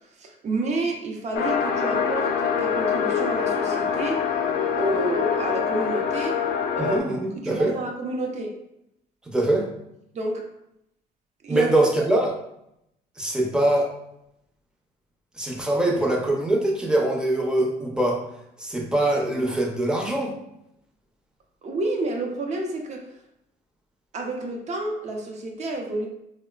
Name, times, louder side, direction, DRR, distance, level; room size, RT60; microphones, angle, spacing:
voice 1, 0.2-4.3 4.8-6.4 6.8-7.0 7.4-8.5 10.1-10.5 11.4-11.7 21.6-23.1 24.1-26.1, right 2 dB, 40° right, 2 dB, 0.6 m, -29 dB
sound 1, 1.3-7.0, left 7 dB, 60° left, 0.5 m, -25 dB
voice 2, 6.8-7.7 9.3-9.7 11.5-12.4 13.2-13.9 15.4-18.2 18.6-20.3, right 1 dB, 5° right, -1 dB, 0.6 m, -23 dB
4.0 x 2.0 x 2.3 m, 0.80 s
cardioid pair, 110°, 17 cm